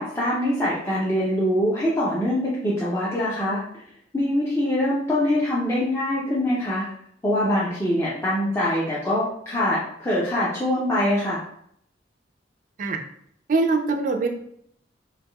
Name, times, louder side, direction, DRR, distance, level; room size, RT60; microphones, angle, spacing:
voice 1, 0.0-3.8 4.1-6.8 7.2-11.4, left 1 dB, 15° left, -8 dB, 0.5 m, -24 dB
voice 2, 13.5-14.3, right 3 dB, 45° right, 5 dB, 0.4 m, -22 dB
3.4 x 2.9 x 2.2 m, 0.69 s
head